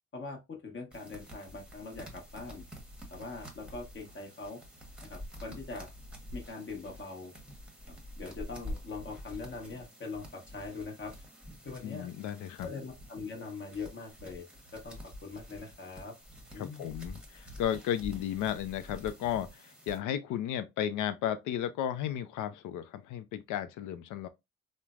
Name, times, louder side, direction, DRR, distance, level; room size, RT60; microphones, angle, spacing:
voice 1, 0.1-2.6 3.1-4.6 5.0-5.9 6.3-7.3 8.2-11.1 11.6-12.1 12.6-14.4 14.7-16.1 16.5-16.9, left 4 dB, 40° left, 0.9 m, -42 dB
sound 1, 0.9-20.0, equal, 5° right, 0.9 m, -48 dB
voice 2, 11.8-12.7 16.6-24.3, left 10 dB, 85° left, 0.5 m, -34 dB
3.1 x 2.1 x 2.3 m
cardioid pair, 90°, 30 cm